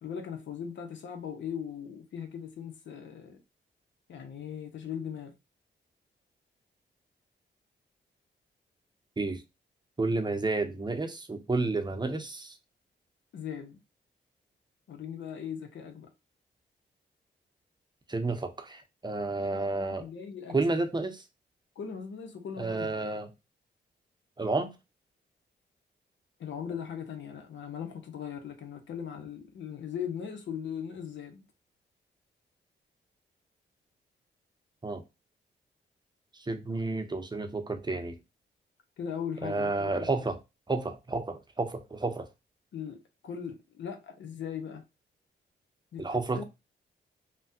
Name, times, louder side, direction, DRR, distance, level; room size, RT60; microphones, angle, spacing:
voice 1, 0.0-3.4 4.1-5.3 13.3-13.8 14.9-16.1 19.3-20.6 21.8-23.1 26.4-31.4 39.0-40.1 42.7-44.8 45.9-46.1 46.3-46.4, left 8 dB, 75° left, 0.8 m, -39 dB
voice 2, 10.0-12.6 18.1-20.1 20.5-21.2 22.6-23.3 24.4-24.7 34.8-35.0 36.3-38.2 39.4-40.4 40.7-42.3 46.0-46.4, right 3 dB, 20° right, 0.7 m, -31 dB
3.3 x 2.2 x 2.6 m
cardioid pair, 60°, 19 cm